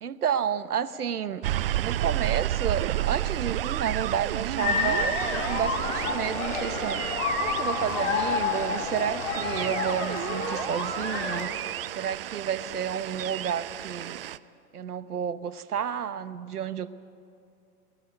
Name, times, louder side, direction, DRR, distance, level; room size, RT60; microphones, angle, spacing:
voice 1, 0.0-7.0 7.4-11.5 12.0-14.2 14.7-16.9, right 8 dB, 75° right, 14 dB, 1.0 m, -31 dB
sound 1, 1.4-14.4, right 13 dB, 40° right, 0.5 m, -31 dB
sound 2, 4.6-11.4, left 4 dB, 55° left, 3.8 m, -29 dB
18.5 x 14.5 x 9.8 m, 2.5 s
figure-of-eight pair, 115°, 45 cm